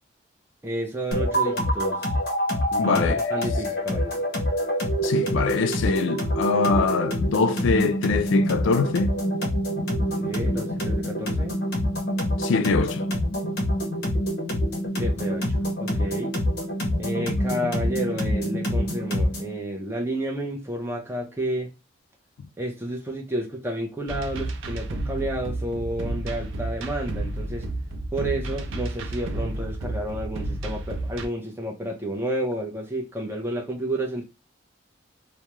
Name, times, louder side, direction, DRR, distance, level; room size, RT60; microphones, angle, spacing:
voice 1, 0.6-2.1 2.7-4.2 10.2-11.5 15.0-16.3 17.0-21.7 22.6-27.7 28.1-34.2, right 1 dB, 10° right, 0.5 m, -31 dB
sound 1, 1.1-19.5, equal, 50° left, 0.7 m, -26 dB
voice 2, 2.8-3.2 5.0-9.2 12.4-13.1, left 4 dB, 80° left, 0.3 m, -23 dB
sound 2, 24.1-31.3, right 1 dB, 85° right, 0.4 m, -31 dB
2.3 x 2.0 x 2.9 m
head